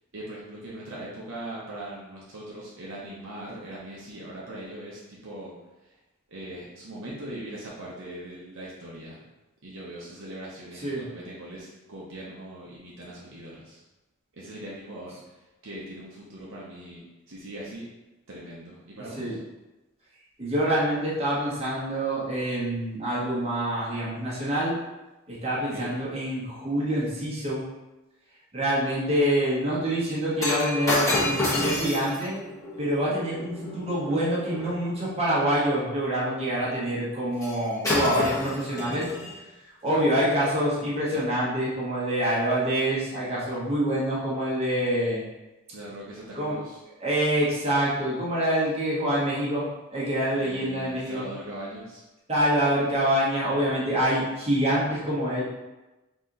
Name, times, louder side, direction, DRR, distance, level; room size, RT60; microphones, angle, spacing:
voice 1, 0.1-5.5 5.8-6.0 6.3-9.2 9.6-13.8 14.3-17.9 18.3-19.4 25.7-25.9 39.8-40.1 45.7-46.8 50.3-52.0, right 1 dB, 60° right, -6 dB, 0.8 m, -40 dB
voice 2, 20.4-24.8 25.3-27.6 28.5-32.3 32.8-39.1 39.8-45.2 46.4-46.6 47.0-51.3 52.3-55.4, equal, 30° right, -8 dB, 1.2 m, -26 dB
Shatter, 30.4-34.8 37.4-37.6 37.8-39.4 40.1-40.2, left 1 dB, 15° left, 1.2 m, -29 dB
4.1 x 2.9 x 3.9 m, 1.1 s
head